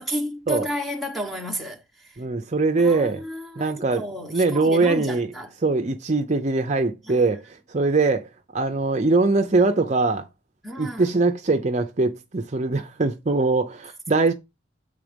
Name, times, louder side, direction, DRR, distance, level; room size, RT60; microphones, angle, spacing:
voice 1, 0.0-2.2 2.8-5.5 7.1-7.2 10.6-11.1, equal, ahead, 1.1 m, -32 dB
voice 2, 2.2-3.2 3.6-5.3 5.6-10.3 10.8-14.3, right 3 dB, 35° right, 0.6 m, -22 dB
7.4 x 3.6 x 5.1 m
head